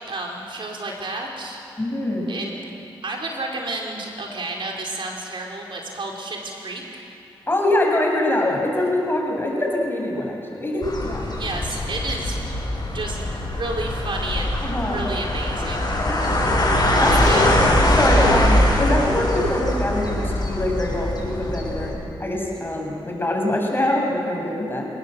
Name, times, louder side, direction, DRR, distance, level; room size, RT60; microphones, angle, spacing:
voice 1, 0.1-1.6 2.3-2.6 3.0-6.8 11.3-12.4 12.9-16.3 17.0-17.4 18.1-18.3 23.8-23.9, right 2 dB, 60° right, 0 dB, 4.5 m, -31 dB
voice 2, 1.8-2.3 7.5-11.3 14.6-15.1 16.0-16.6 17.0-21.9 22.2-24.8, left 1 dB, 20° left, 0 dB, 7.0 m, -24 dB
sound 1, 10.8-21.9, left 1 dB, 45° left, 7.3 m, -22 dB
30.0 x 19.0 x 7.7 m, 2.9 s
cardioid pair, 65°, 10 cm